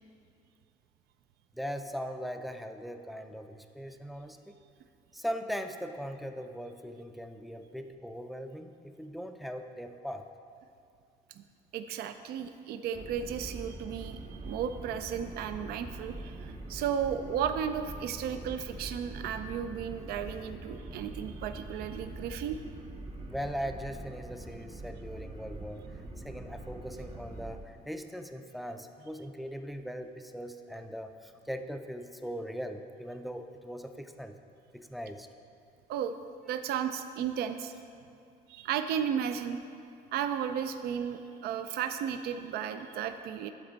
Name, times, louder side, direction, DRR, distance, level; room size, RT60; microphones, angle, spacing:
voice 1, 1.5-4.5 5.1-10.3 23.3-25.9 26.2-34.3 34.7-35.3, equal, ahead, 6 dB, 0.4 m, -40 dB
voice 2, 11.7-22.6 35.9-36.2 36.5-37.7 38.5-39.6 40.1-43.5, right 8 dB, 70° right, 9 dB, 0.4 m, -34 dB
sound 1, 12.9-27.6, right 2 dB, 30° right, 0.8 m, -44 dB
11.5 x 4.2 x 3.9 m, 2.4 s
cardioid pair, 110°, 17 cm